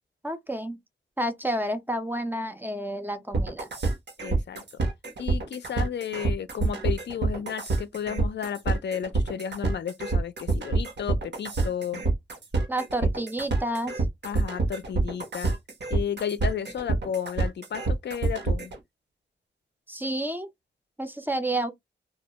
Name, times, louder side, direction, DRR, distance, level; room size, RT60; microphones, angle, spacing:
voice 1, 0.2-0.8 1.2-3.7 12.7-14.0 19.9-20.5 21.0-21.7, right 1 dB, 10° right, 0.4 m, -30 dB
sound 1, 3.3-18.8, right 3 dB, 65° right, 0.9 m, -26 dB
voice 2, 4.2-4.6 5.2-12.0 13.0-13.1 14.2-15.5 15.9-18.7, left 8 dB, 65° left, 0.4 m, -33 dB
2.3 x 2.1 x 2.8 m
wide cardioid pair, 90°, 20 cm